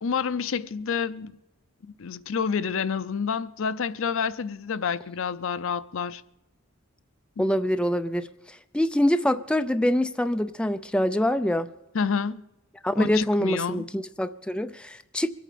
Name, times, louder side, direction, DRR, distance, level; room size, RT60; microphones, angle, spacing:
voice 1, 0.0-1.4 2.0-6.2 7.4-7.5 11.9-12.4 13.0-13.8, left 6 dB, 65° left, 0.5 m, -28 dB
voice 2, 7.4-11.7 12.8-15.3, left 1 dB, 5° left, 0.4 m, -25 dB
23.5 x 8.7 x 5.0 m
head